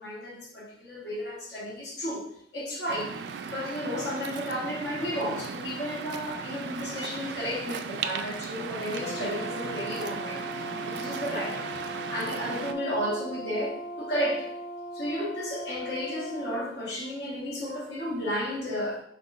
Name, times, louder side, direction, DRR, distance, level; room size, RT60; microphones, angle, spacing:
voice 1, 0.0-2.3 2.5-3.2 3.5-11.8 12.1-14.5 14.9-19.0, equal, 70° left, -4 dB, 1.5 m, -33 dB
Waves surf, 2.9-12.7, right 6 dB, 70° right, 0.4 m, -37 dB
Brass instrument, 8.9-16.7, right 1 dB, 35° left, 0.4 m, -39 dB
5.4 x 3.9 x 2.5 m, 0.70 s
head